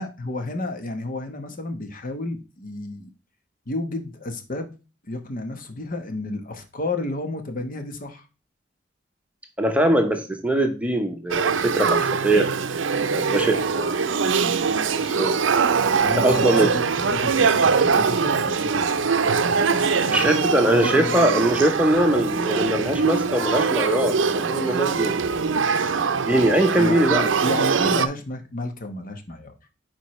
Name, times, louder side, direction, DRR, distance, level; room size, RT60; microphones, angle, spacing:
voice 1, 0.0-3.1 3.7-4.7 5.1-8.3 16.0-16.8 17.1-20.2 20.7-21.5 26.8-29.5, left 2 dB, 45° left, 1.1 m, -31 dB
voice 2, 9.6-12.5 13.1-14.2 14.8-15.4 16.1-16.7 20.1-25.6 26.3-27.3, right 1 dB, 5° right, 0.9 m, -22 dB
Male speech man speaking / Child speech kid speaking / Conversation, 11.3-28.1, right 5 dB, 80° right, 0.6 m, -22 dB
9.1 x 4.5 x 3.1 m
head